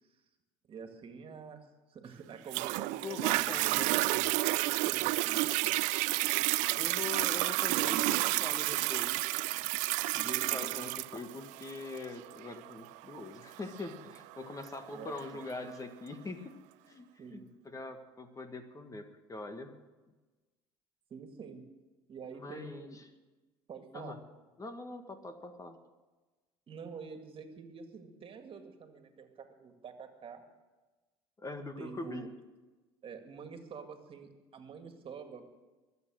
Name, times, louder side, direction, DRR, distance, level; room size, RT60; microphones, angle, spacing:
voice 1, 0.6-1.6 1.9-3.8 4.5-5.4 7.7-8.4 10.1-10.6 14.9-15.4 17.2-17.5 21.1-21.7 22.1-23.0 23.7-24.2 26.7-30.4 31.8-32.3 33.0-35.4, right 6 dB, 45° right, 6 dB, 2.2 m, -47 dB
Toilet flush, 2.5-15.5 16.1-16.2, right 21 dB, 75° right, 0.4 m, -31 dB
voice 2, 3.0-4.4 6.8-9.3 10.2-16.5 16.8-17.4 17.6-19.7 22.4-22.9 23.9-24.2 24.6-25.8 31.4-32.3, left 3 dB, 25° left, 7 dB, 1.7 m, -43 dB
22.5 x 8.3 x 6.4 m, 1.2 s
supercardioid pair, 75°, 13 cm